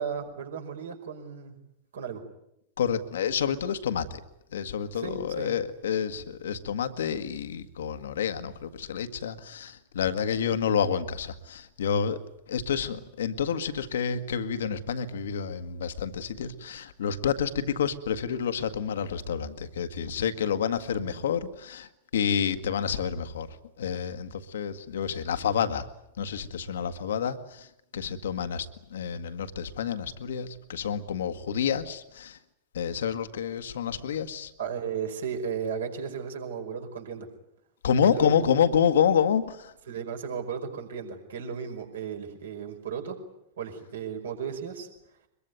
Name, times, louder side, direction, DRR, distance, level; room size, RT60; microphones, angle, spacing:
voice 1, 0.0-1.5 1.9-2.2 4.9-5.5 34.6-37.3 38.0-38.4 39.9-43.2 43.6-44.9, right 7 dB, 65° right, 5.1 m, -35 dB
voice 2, 2.8-4.2 4.5-12.2 12.5-23.5 23.8-25.9 26.2-27.7 27.9-32.4 32.7-34.5 37.8-39.7, left 7 dB, 65° left, 1.6 m, -28 dB
24.0 x 22.0 x 9.4 m
figure-of-eight pair, 90°, 0 cm